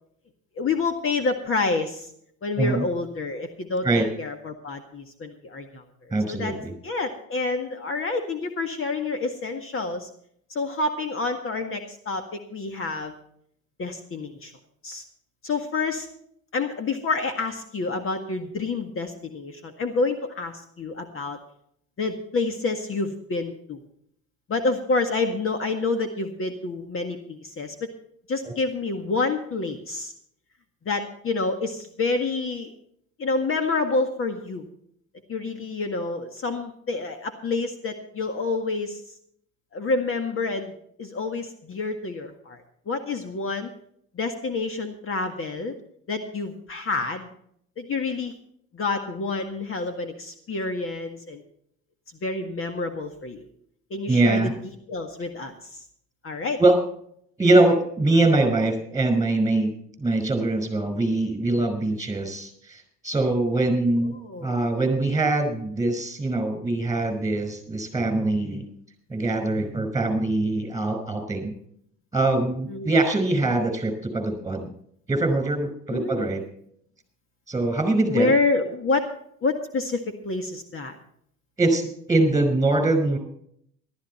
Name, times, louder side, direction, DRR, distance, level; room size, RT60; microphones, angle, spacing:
voice 1, 0.6-2.1 2.4-5.8 6.3-6.6 6.8-10.1 10.5-13.1 13.8-14.5 14.8-15.0 15.4-16.1 16.5-21.4 22.0-23.8 24.5-27.9 28.3-30.1 30.9-32.7 33.2-34.7 35.3-39.0 39.7-43.7 44.1-45.7 46.1-47.3 47.8-48.3 48.7-51.4 52.2-53.5 53.9-54.5 54.9-55.8 56.2-56.6 64.2-64.5 72.7-73.0 75.9-76.3 78.1-79.1 79.4-81.0, left 3 dB, 40° left, 6 dB, 1.9 m, -28 dB
voice 2, 6.1-6.7 28.5-28.6 54.1-54.5 56.6-56.8 57.4-59.7 60.0-64.1 64.4-68.7 69.1-71.5 72.1-74.7 75.1-76.4 77.5-78.3 81.6-83.2, right 2 dB, 10° right, 7 dB, 5.3 m, -23 dB
14.5 x 13.0 x 4.4 m, 0.67 s
supercardioid pair, 90°, 32 cm